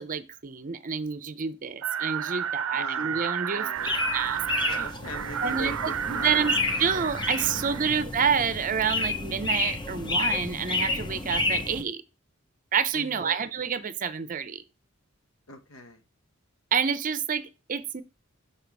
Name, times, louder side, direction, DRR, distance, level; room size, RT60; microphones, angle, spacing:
voice 1, 0.0-3.7 4.1-4.4 5.4-12.0 12.7-14.6 16.7-18.0, right 6 dB, 40° right, 0.6 m, -28 dB
sound 1, 1.8-8.0, right 8 dB, 85° right, 0.5 m, -32 dB
voice 2, 2.7-3.1 3.5-3.9 4.6-6.6 7.5-8.0 12.9-13.4 15.5-16.0, left 1 dB, 85° left, 1.1 m, -42 dB
sound 2, 3.8-11.8, left 2 dB, 20° left, 0.7 m, -30 dB
7.1 x 4.3 x 4.6 m
head